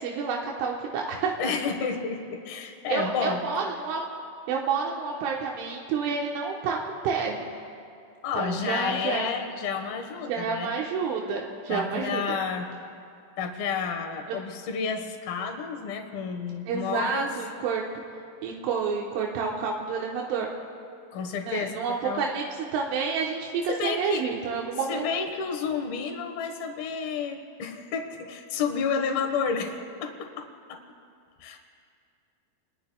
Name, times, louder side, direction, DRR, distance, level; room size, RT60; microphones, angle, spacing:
voice 1, 0.0-1.5 2.9-4.0 4.5-7.4 8.3-9.3 10.3-12.4 16.7-17.8 18.4-20.5 21.5-22.5 22.7-25.1, right 5 dB, 85° right, -1 dB, 3.6 m, -29 dB
voice 2, 1.4-3.4 8.2-10.7 11.7-12.7 13.4-17.3 21.1-22.2 23.7-24.2 24.9-30.8 31.4-31.6, left 6 dB, 65° left, 4 dB, 2.7 m, -31 dB
29.0 x 21.5 x 2.3 m, 2.5 s
omnidirectional pair, 5.5 m